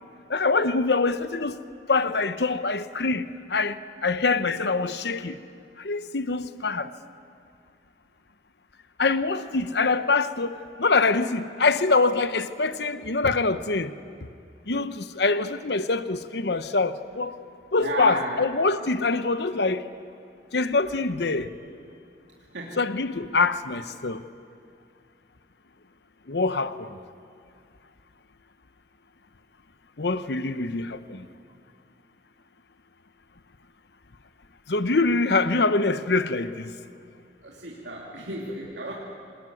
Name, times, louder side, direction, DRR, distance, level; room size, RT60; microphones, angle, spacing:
voice 1, 0.3-1.6 1.9-5.4 5.8-6.9 9.0-13.9 14.7-17.3 17.7-19.8 20.5-21.5 22.8-24.2 26.3-27.0 30.0-31.3 34.7-36.7, left 3 dB, 70° left, 0.9 m, -24 dB
voice 2, 17.8-18.5 22.5-22.7 37.4-38.9, right 2 dB, 90° right, 2.9 m, -33 dB
26.0 x 20.0 x 9.5 m
head